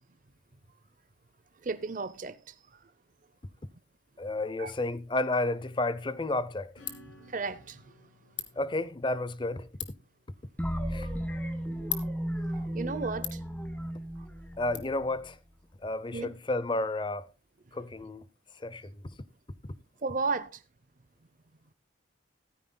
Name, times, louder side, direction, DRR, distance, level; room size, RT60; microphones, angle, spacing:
voice 1, 1.6-2.8 4.6-4.7 7.3-7.8 11.0-11.1 12.7-13.4 16.1-16.3 20.0-20.6, right 4 dB, 45° right, 0.6 m, -34 dB
voice 2, 4.2-6.8 8.6-9.7 10.9-11.1 14.6-15.4 15.8-17.3 17.7-18.2 18.6-19.0 19.6-19.7, left 2 dB, 25° left, 0.6 m, -31 dB
Ratchet pawl, 5.7-14.8, left 12 dB, 70° left, 1.6 m, -45 dB
Acoustic guitar / Strum, 6.8-11.0, left 1 dB, 85° left, 4.0 m, -58 dB
sound 1, 10.6-15.3, equal, 10° left, 1.0 m, -35 dB
14.5 x 13.5 x 2.2 m
head